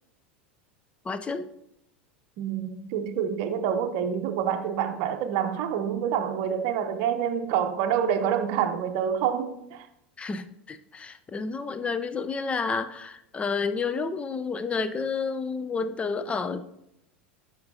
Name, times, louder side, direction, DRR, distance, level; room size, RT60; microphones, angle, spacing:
voice 1, 1.0-1.5 10.2-16.6, left 4 dB, 20° left, 0.5 m, -30 dB
voice 2, 2.4-9.9, right 8 dB, 50° right, 0.7 m, -27 dB
11.0 x 5.2 x 2.7 m
figure-of-eight pair, 85°, 6 cm